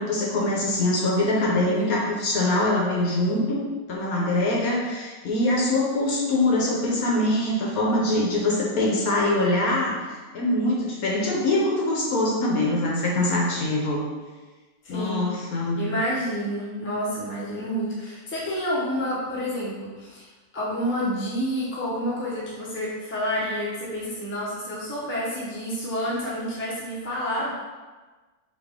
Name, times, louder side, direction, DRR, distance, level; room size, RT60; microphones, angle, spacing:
voice 1, 0.0-3.6 3.9-14.0 14.9-15.8, left 1 dB, 65° left, -3 dB, 1.1 m, -23 dB
voice 2, 14.8-15.3 15.7-20.3 20.5-27.5, equal, 10° left, -7 dB, 0.6 m, -29 dB
4.1 x 3.0 x 3.5 m, 1.3 s
omnidirectional pair, 1.8 m